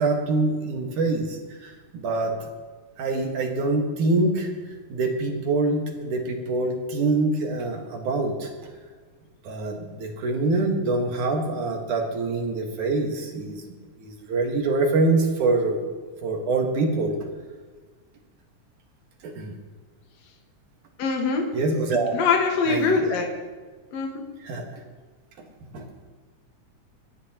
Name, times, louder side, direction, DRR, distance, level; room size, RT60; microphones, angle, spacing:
voice 1, 0.0-2.3 3.0-4.5 4.9-8.5 9.4-15.8 16.2-17.2 19.2-19.5 21.5-22.2 22.7-23.2 24.4-24.8 25.7-25.9, right 3 dB, 75° right, 2 dB, 3.0 m, -25 dB
voice 2, 21.0-21.4 22.1-23.3 23.9-24.2, left 5 dB, 60° left, 1 dB, 2.6 m, -23 dB
26.0 x 10.5 x 3.0 m, 1.4 s
omnidirectional pair, 3.6 m